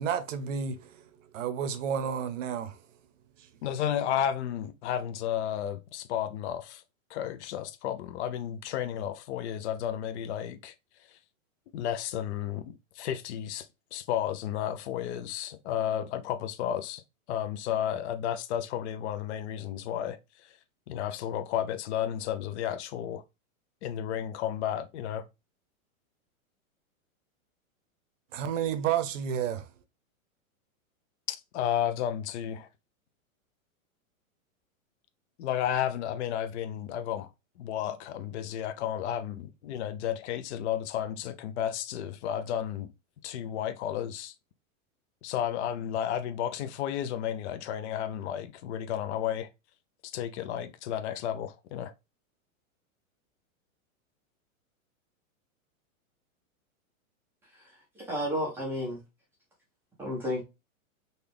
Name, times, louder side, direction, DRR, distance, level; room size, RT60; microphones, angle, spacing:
voice 1, 0.0-2.8 28.3-29.7, right 8 dB, 65° right, 0.8 m, -31 dB
voice 2, 3.6-6.8 7.1-10.7 11.7-17.0 17.3-20.6 20.9-23.2 23.8-25.3 31.3-32.7 35.4-37.3 37.6-42.9 43.2-44.3 45.2-49.5 50.0-51.9, left 10 dB, 55° left, 0.5 m, -32 dB
voice 3, 58.0-59.0 60.0-60.4, equal, 5° right, 0.4 m, -32 dB
4.0 x 2.3 x 3.3 m
supercardioid pair, 155°, 42 cm